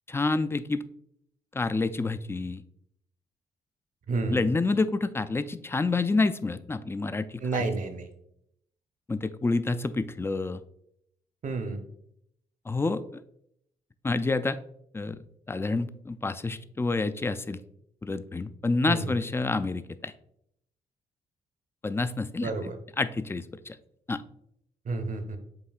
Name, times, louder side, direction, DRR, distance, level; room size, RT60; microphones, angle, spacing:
voice 1, 0.1-0.8 1.5-2.6 4.3-7.6 9.1-10.6 12.7-13.2 14.0-14.6 14.9-15.2 15.5-17.6 18.0-20.1 21.8-22.5 23.0-23.8 24.1-24.2, left 3 dB, 15° left, 13 dB, 0.3 m, -28 dB
voice 2, 4.1-4.5 7.4-8.1 11.4-11.8 18.9-19.2 22.4-22.8 24.8-25.4, right 3 dB, 50° right, 7 dB, 0.7 m, -30 dB
7.6 x 2.8 x 2.3 m, 0.75 s
hypercardioid pair, 40°, 17 cm